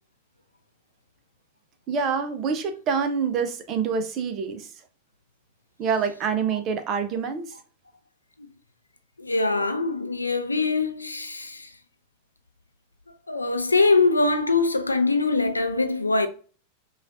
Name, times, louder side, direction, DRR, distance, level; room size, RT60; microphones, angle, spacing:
voice 1, 1.9-4.7 5.8-7.5, right 6 dB, 35° right, 0.6 m, -26 dB
voice 2, 9.2-11.7 13.3-16.3, left 3 dB, 80° left, 0.4 m, -23 dB
5.2 x 2.4 x 2.5 m
figure-of-eight pair, 90°, 0 cm